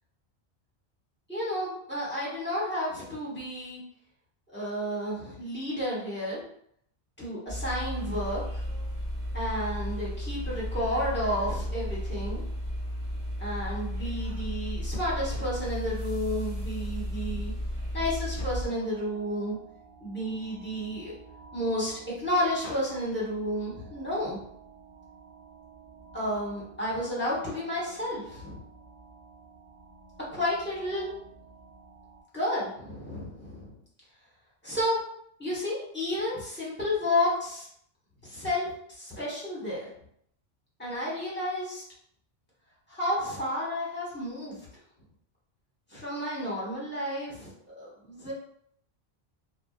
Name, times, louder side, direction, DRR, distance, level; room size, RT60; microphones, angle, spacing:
voice 1, 1.3-3.8 4.5-6.4 7.2-8.4 9.3-12.4 13.4-17.5 17.9-19.5 20.0-21.1 21.5-24.4 26.1-28.6 30.3-31.1 32.3-33.7 34.6-35.0 35.4-37.7 38.2-39.9 40.8-41.8 42.9-44.7 45.9-48.3, left 1 dB, 10° left, -7 dB, 1.0 m, -31 dB
sound 1, 7.5-18.7, equal, 35° right, 0.9 m, -34 dB
sound 2, 18.6-32.2, right 4 dB, 60° right, 0.9 m, -52 dB
2.6 x 2.3 x 2.4 m, 0.68 s
omnidirectional pair, 1.1 m